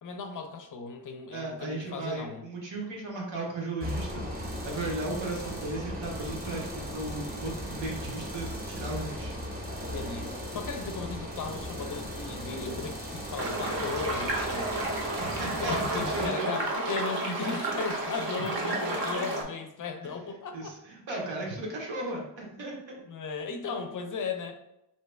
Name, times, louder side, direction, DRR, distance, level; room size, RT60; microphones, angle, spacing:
voice 1, 0.0-2.4 9.8-14.7 15.6-20.7 23.1-24.5, left 4 dB, 45° left, 5 dB, 0.4 m, -36 dB
voice 2, 1.3-9.4 15.2-16.6 17.4-17.7 18.3-19.2 20.0-20.1 20.5-23.0, right 2 dB, 75° right, -1 dB, 1.0 m, -36 dB
sound 1, 3.8-16.3, equal, 20° right, 0.7 m, -37 dB
sound 2, 13.4-19.4, right 2 dB, 55° right, 0.8 m, -32 dB
2.8 x 2.3 x 3.2 m, 0.84 s
wide cardioid pair, 115°, 45 cm